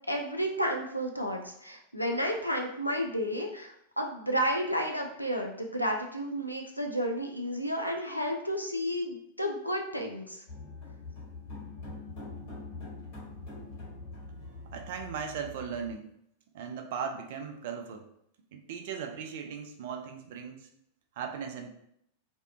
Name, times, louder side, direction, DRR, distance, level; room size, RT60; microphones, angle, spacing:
voice 1, 0.1-10.4, equal, 90° left, 1 dB, 0.4 m, -32 dB
sound 1, 10.5-15.9, left 3 dB, 50° left, 1.4 m, -44 dB
voice 2, 14.7-16.1 16.5-18.1 18.5-20.7 21.2-21.7, right 6 dB, 55° right, 5 dB, 0.3 m, -38 dB
2.6 x 2.2 x 2.4 m, 0.73 s
figure-of-eight pair, 90°, 0 cm